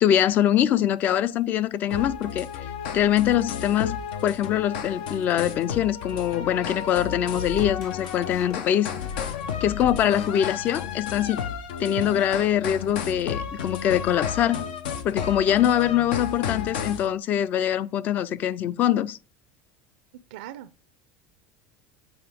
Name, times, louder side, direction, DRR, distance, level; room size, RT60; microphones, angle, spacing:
voice 1, 0.0-2.5 2.9-4.0 4.2-8.9 9.6-11.4 11.8-14.6 15.0-19.2, left 10 dB, 40° left, 0.4 m, -23 dB
sound 1, 1.9-17.1, left 7 dB, 85° left, 0.8 m, -33 dB
sound 2, 7.3-11.5, left 6 dB, 65° left, 2.3 m, -40 dB
voice 2, 20.3-20.9, right 12 dB, 90° right, 0.4 m, -42 dB
7.8 x 4.8 x 3.5 m
supercardioid pair, 135°, 5 cm